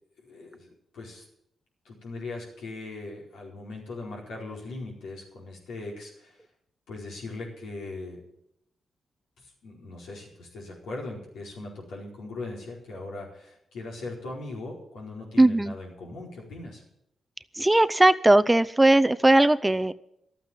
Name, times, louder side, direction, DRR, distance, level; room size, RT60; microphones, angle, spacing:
voice 1, 0.2-1.2 1.8-6.4 6.9-8.2 9.4-16.8, left 2 dB, 90° left, -3 dB, 4.6 m, -39 dB
voice 2, 15.4-15.7 17.6-19.9, right 1 dB, 15° right, 14 dB, 0.6 m, -19 dB
12.0 x 8.9 x 9.2 m, 0.77 s
supercardioid pair, 55°, 0 cm